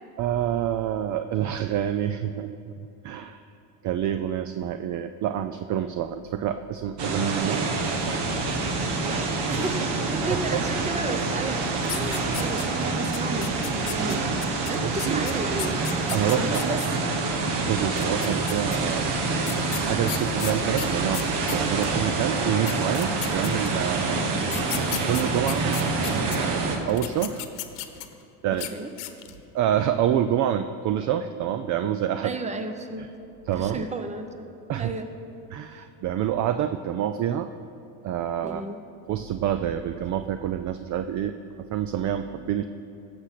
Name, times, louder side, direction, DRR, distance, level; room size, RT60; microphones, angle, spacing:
voice 1, 0.2-2.6 3.0-3.4 3.8-7.7 10.5-10.6 14.8-15.3 16.1-16.6 17.6-19.2 19.8-21.3 21.5-24.3 25.1-25.8 26.1-27.4 28.4-28.7 29.5-32.4 33.5-33.8 34.7-34.9 35.5-37.5 38.0-38.6 39.1-41.4 41.7-42.6, right 10 dB, 40° right, 10 dB, 0.5 m, -27 dB
sound 1, 7.0-26.8, right 3 dB, 60° right, 1.6 m, -26 dB
voice 2, 9.5-11.6 11.9-14.4 14.7-15.7 16.4-16.8 24.2-24.7 28.7-28.9 32.2-33.1 33.6-35.1 35.7-35.8 38.4-38.8, right 3 dB, 15° right, 7 dB, 0.9 m, -33 dB
sound 2, 11.8-12.8 13.1-16.9 17.9-18.8 19.4-21.9 22.4-22.5 22.7-23.9 24.4-26.4 26.9-28.2 28.5-28.7 29.0-29.4, left 15 dB, 60° left, 1.1 m, -35 dB
15.5 x 6.8 x 5.8 m, 2.7 s
supercardioid pair, 100°, 47 cm